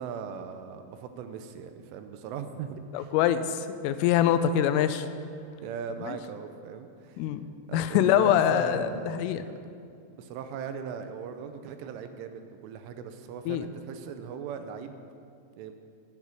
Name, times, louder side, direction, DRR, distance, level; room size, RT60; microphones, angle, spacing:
voice 1, 0.0-3.1 5.6-7.2 7.7-9.5 10.1-15.0 15.6-15.7, right 7 dB, 80° right, 8 dB, 3.2 m, -39 dB
voice 2, 2.9-5.1 6.0-6.2 7.2-7.4 7.7-9.4 13.5-13.7, left 10 dB, 85° left, 11 dB, 3.2 m, -24 dB
12.0 x 9.5 x 10.0 m, 2.4 s
omnidirectional pair, 5.8 m